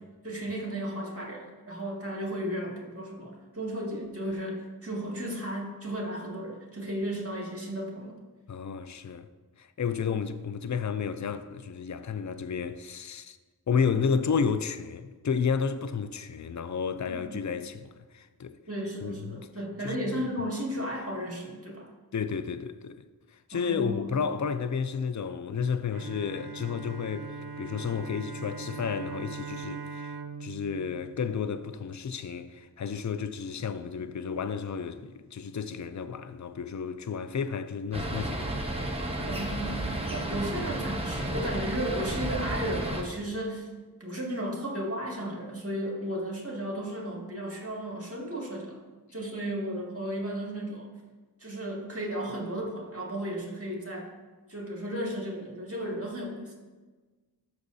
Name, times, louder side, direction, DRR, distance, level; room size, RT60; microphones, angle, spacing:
voice 1, 0.2-8.2 17.0-17.4 18.7-21.9 23.5-24.0 39.3-43.7 44.0-48.8 49.1-50.9 51.4-54.1 54.5-56.5, equal, 35° right, 2.1 m, -34 dB
voice 2, 8.5-9.3 9.6-13.4 13.7-18.6 19.0-19.5 19.8-20.3 22.1-23.0 23.3-38.7 39.2-39.4, left 6 dB, 50° left, 0.5 m, -32 dB
Bowed string instrument, 25.9-32.1, right 4 dB, 70° right, 0.6 m, -41 dB
sound 1, 37.9-43.0, right 1 dB, 15° right, 1.0 m, -32 dB
13.0 x 6.5 x 2.7 m
wide cardioid pair, 45°, 38 cm